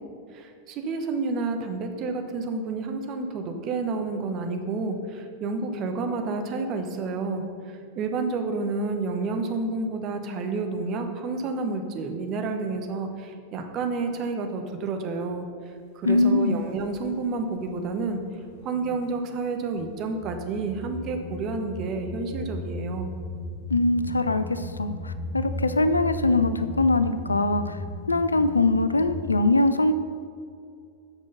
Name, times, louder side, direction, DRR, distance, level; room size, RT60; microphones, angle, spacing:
voice 1, 0.3-15.5 15.9-18.2 18.6-23.1, right 3 dB, 35° right, 5 dB, 1.0 m, -30 dB
voice 2, 16.0-16.6 23.7-27.8 28.1-29.9, left 2 dB, 80° left, 11 dB, 0.4 m, -22 dB
sound 1, 16.1-16.3 16.8-17.9 18.3-19.2 19.7-29.4, left 1 dB, 45° left, 1.5 m, -36 dB
7.7 x 6.1 x 5.5 m, 2.4 s
figure-of-eight pair, 90°, 0 cm